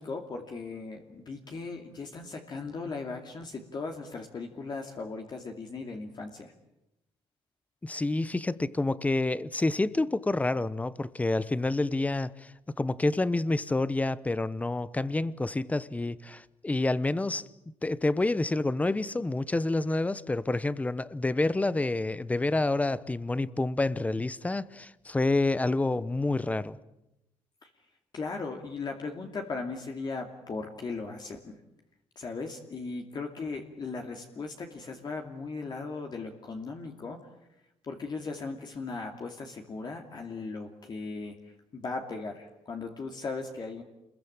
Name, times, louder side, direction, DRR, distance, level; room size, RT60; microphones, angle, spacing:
voice 1, 0.0-6.5 27.6-27.7 28.1-31.6 32.2-37.2 37.8-43.8, left 4 dB, 40° left, 2.7 m, -38 dB
voice 2, 7.8-17.5 17.8-26.8, left 2 dB, 15° left, 0.9 m, -28 dB
27.5 x 22.0 x 8.9 m
cardioid pair, 110°, 11 cm